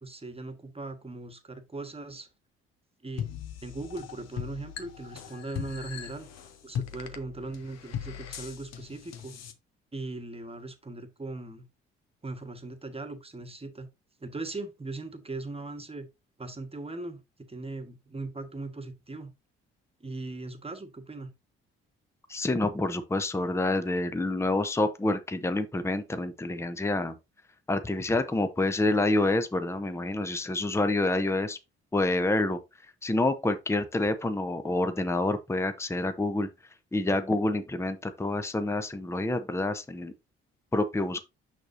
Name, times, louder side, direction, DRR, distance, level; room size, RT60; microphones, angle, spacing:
voice 1, 0.0-2.3 3.0-3.3 3.6-6.3 6.6-9.3 9.9-11.6 12.2-13.9 14.2-16.1 16.4-19.3 20.0-21.3, right 2 dB, 20° right, 1.4 m, -39 dB
sound 1, 3.2-9.5, left 9 dB, 55° left, 1.0 m, -39 dB
voice 2, 22.3-27.2 27.7-31.6 31.9-32.6 33.0-36.5 36.9-40.1 40.7-41.2, left 2 dB, 10° left, 0.8 m, -27 dB
6.5 x 6.1 x 2.7 m
figure-of-eight pair, 45°, 32 cm